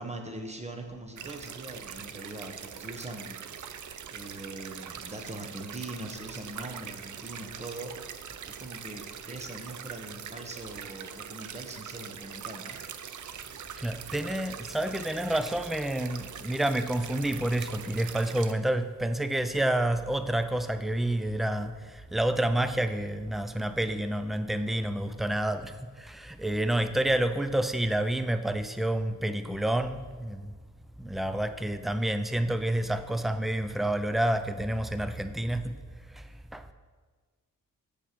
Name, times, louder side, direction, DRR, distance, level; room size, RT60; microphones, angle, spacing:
voice 1, 0.0-3.4 3.7-12.8, right 1 dB, 20° right, 4 dB, 0.9 m, -42 dB
sound 1, 1.2-18.5, right 8 dB, 60° right, 0.5 m, -42 dB
voice 2, 13.8-30.6 31.0-35.8 36.1-36.2 36.5-36.7, right 1 dB, ahead, 10 dB, 0.3 m, -29 dB
7.2 x 6.8 x 4.5 m, 1.5 s
wide cardioid pair, 115°, 33 cm